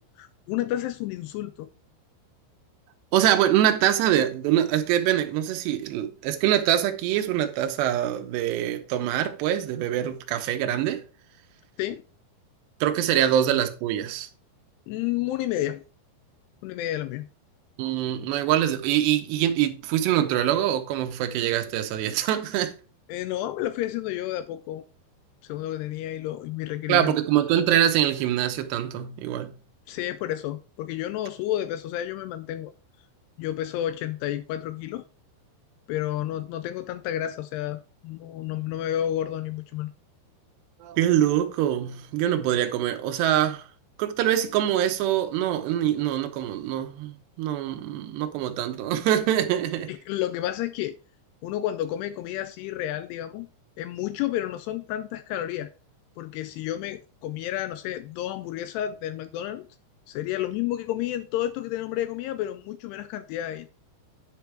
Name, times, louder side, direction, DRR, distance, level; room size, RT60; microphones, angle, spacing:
voice 1, 0.2-1.7 11.8-12.0 13.1-13.2 14.9-15.8 16.6-17.3 23.1-24.8 25.4-27.1 29.9-32.7 33.4-35.0 35.9-39.9 49.9-51.0 51.4-53.5 53.8-55.7 56.2-59.7 60.1-63.7, left 13 dB, 90° left, 2.4 m, -31 dB
voice 2, 3.1-11.0 12.8-14.3 17.8-22.7 26.9-29.5 40.8-43.6 44.0-49.9, right 11 dB, 75° right, 3.0 m, -24 dB
10.5 x 5.2 x 4.6 m
omnidirectional pair, 5.3 m